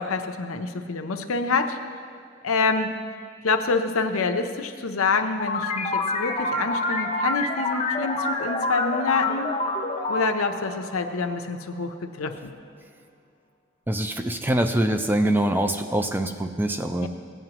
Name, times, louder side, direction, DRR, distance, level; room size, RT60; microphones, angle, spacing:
voice 1, 0.0-1.8 2.4-2.9 3.4-9.5 10.1-12.5 17.0-17.1, left 4 dB, 85° left, 6 dB, 0.7 m, -26 dB
sound 1, 5.4-11.6, left 2 dB, 25° left, 0.8 m, -28 dB
voice 2, 13.9-17.1, right 1 dB, 10° right, 7 dB, 0.4 m, -24 dB
17.0 x 9.1 x 3.0 m, 2.3 s
head